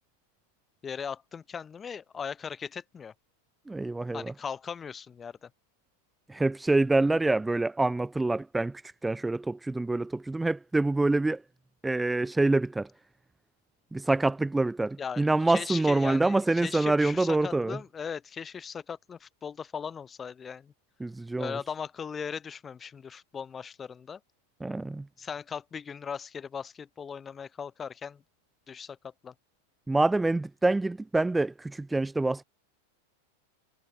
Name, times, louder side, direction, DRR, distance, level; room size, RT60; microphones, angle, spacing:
voice 1, 0.8-3.1 4.1-5.5 15.0-20.7 21.4-24.2 25.2-28.2 28.7-29.0 29.2-29.3, left 6 dB, 15° left, 4.1 m, -38 dB
voice 2, 3.7-4.3 6.3-11.4 11.8-12.9 13.9-17.8 21.0-21.6 24.6-25.1 29.9-32.4, right 2 dB, 5° right, 0.9 m, -26 dB
supercardioid pair, 165°, 0 cm